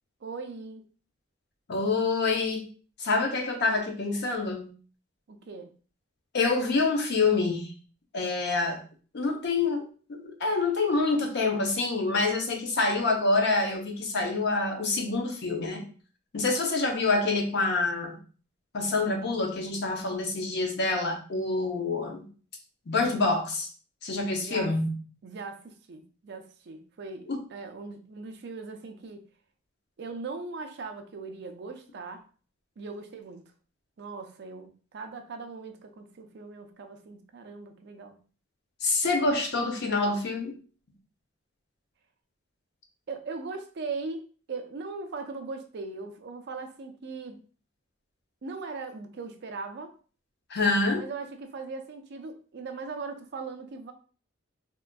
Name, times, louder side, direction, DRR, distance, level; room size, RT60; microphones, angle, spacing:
voice 1, 0.2-0.8 5.3-5.7 24.3-24.7 25.2-27.2 27.5-29.2 30.0-32.2 32.8-33.4 34.0-38.1 43.1-47.4 48.4-49.9 51.0-53.9, right 4 dB, 55° right, 0.4 m, -39 dB
voice 2, 1.7-2.6 3.0-4.7 6.3-7.7 8.1-8.8 9.1-15.8 16.3-18.2 18.7-22.2 22.9-23.7 24.0-24.9 27.3-27.4 38.8-40.5 50.5-51.0, left 3 dB, 55° left, 0.6 m, -26 dB
3.6 x 2.4 x 2.2 m
head